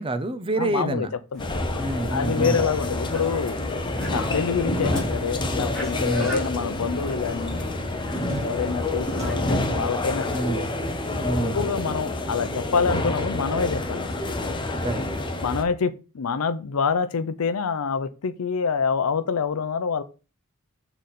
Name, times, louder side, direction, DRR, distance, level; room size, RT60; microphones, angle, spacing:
voice 1, 0.0-1.1 1.8-2.6 6.0-6.4 10.3-10.7 11.1-11.6 14.8-15.2, right 2 dB, 25° right, 0.6 m, -27 dB
voice 2, 0.6-1.5 2.1-3.6 4.1-7.6 8.4-10.7 11.5-14.1 15.4-20.0, left 5 dB, 80° left, 0.5 m, -26 dB
sound 1, 1.3-9.5, left 1 dB, 5° left, 2.8 m, -39 dB
sound 2, 1.4-15.6, left 2 dB, 20° left, 0.7 m, -28 dB
6.4 x 3.9 x 4.2 m
head